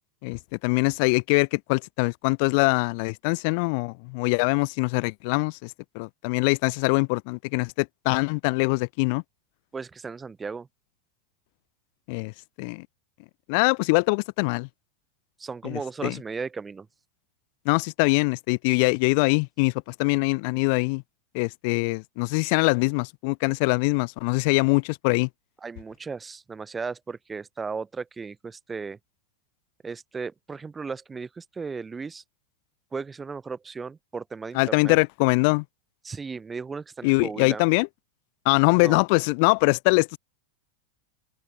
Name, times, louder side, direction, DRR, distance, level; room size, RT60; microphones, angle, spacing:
voice 1, 0.2-9.2 12.1-12.9 13.5-14.7 15.6-16.2 17.7-21.0 21.3-25.3 34.5-35.6 37.0-37.9 38.5-40.2, left 32 dB, 45° left, 0.3 m, -23 dB
voice 2, 9.7-10.7 15.4-16.9 25.6-29.0 29.8-32.2 32.9-35.0 36.0-37.6 38.8-39.0, right 5 dB, 15° right, 0.7 m, -35 dB
open air
figure-of-eight pair, 90°, 0 cm